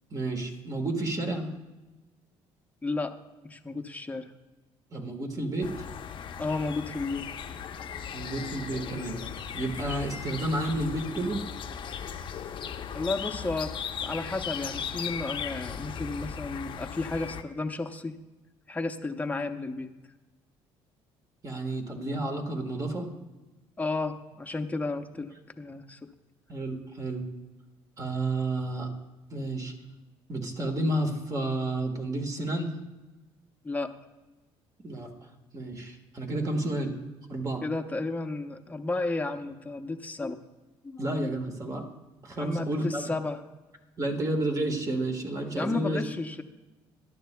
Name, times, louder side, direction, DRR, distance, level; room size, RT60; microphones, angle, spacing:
voice 1, 0.1-1.5 4.9-5.8 8.1-9.2 9.5-11.4 21.4-23.1 26.5-27.3 28.0-28.9 29.3-29.7 30.3-32.7 34.8-35.1 35.5-36.9 37.3-37.6 41.0-41.8 42.2-43.0 44.0-46.0, right 1 dB, 30° right, 3 dB, 1.6 m, -31 dB
voice 2, 2.8-4.3 6.4-7.3 12.9-13.7 14.0-18.2 18.7-20.0 23.8-26.1 33.6-33.9 37.6-40.4 40.8-41.0 42.4-43.4 45.6-46.4, left 3 dB, 15° left, 5 dB, 0.8 m, -33 dB
sound 1, 5.6-17.4, left 7 dB, 50° left, 0.7 m, -37 dB
17.5 x 11.0 x 2.3 m, 1.1 s
cardioid pair, 105°, 11 cm